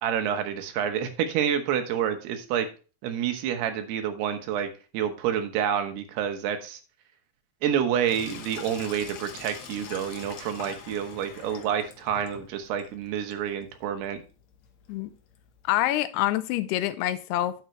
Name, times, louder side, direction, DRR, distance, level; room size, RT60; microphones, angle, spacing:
voice 1, 0.0-2.7 3.0-4.7 4.9-6.8 7.6-14.2, right 9 dB, 85° right, 3.2 m, -28 dB
Sink (filling or washing), 8.0-15.8, left 7 dB, 65° left, 1.8 m, -45 dB
voice 2, 15.6-17.5, left 14 dB, 90° left, 2.7 m, -26 dB
9.9 x 8.0 x 3.1 m
omnidirectional pair, 4.5 m